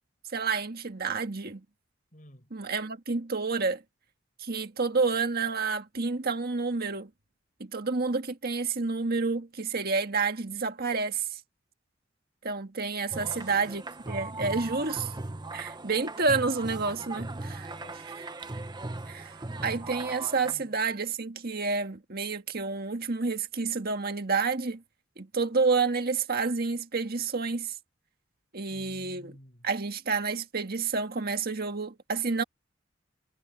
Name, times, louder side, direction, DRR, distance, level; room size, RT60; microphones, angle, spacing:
voice 1, 0.3-1.6 2.5-3.8 4.4-7.1 7.6-11.4 12.4-13.8 14.1-15.1 15.5-17.7 19.1-19.3 19.6-24.8 25.2-27.7 28.5-29.3 29.6-32.4, right 4 dB, 50° right, 1.7 m, -29 dB
voice 2, 2.1-2.5 13.1-13.8 17.7-18.1 20.4-20.7 28.7-29.7, left 1 dB, 40° left, 6.1 m, -51 dB
sound 1, 13.1-20.5, right 2 dB, 20° right, 1.0 m, -38 dB
head